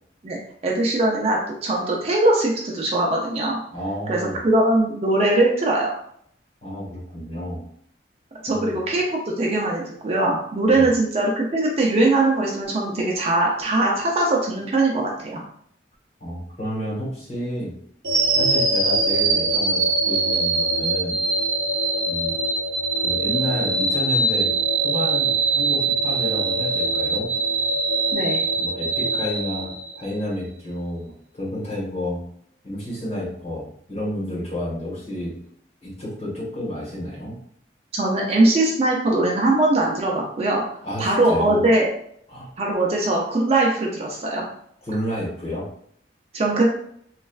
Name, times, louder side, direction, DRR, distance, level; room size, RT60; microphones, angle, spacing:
voice 1, 0.6-3.6 4.1-4.2 4.4-5.9 8.4-15.4 28.1-28.4 37.9-40.6 41.0-41.9 42.6-44.4 46.3-46.7, right 2 dB, 35° right, -1 dB, 0.4 m, -21 dB
voice 2, 3.7-4.4 6.6-7.7 8.5-8.8 10.7-10.9 16.2-17.7 18.3-21.2 22.1-22.3 23.0-24.5 24.8-27.3 28.5-32.2 32.6-35.3 35.8-37.4 40.8-41.6 42.3-42.5 44.8-45.7, equal, 35° left, -7 dB, 1.3 m, -30 dB
sound 1, 18.0-30.2, right 3 dB, 70° right, 0.6 m, -22 dB
3.1 x 2.3 x 2.4 m, 0.67 s
head